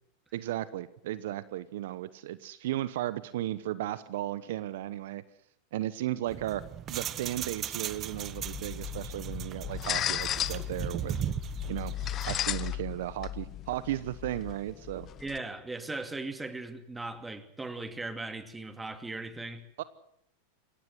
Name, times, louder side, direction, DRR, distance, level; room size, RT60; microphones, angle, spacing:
voice 1, 0.3-5.2 5.7-6.6 6.9-11.1 11.7-11.9 12.2-15.1 19.8-19.9, right 14 dB, 70° right, 1.0 m, -35 dB
sound 1, 6.3-12.4, right 10 dB, 35° right, 1.0 m, -38 dB
sound 2, 8.1-15.4, left 12 dB, 35° left, 0.9 m, -36 dB
voice 2, 15.2-19.7, right 2 dB, 10° right, 2.6 m, -38 dB
23.5 x 18.0 x 8.1 m
hypercardioid pair, 100°, 0 cm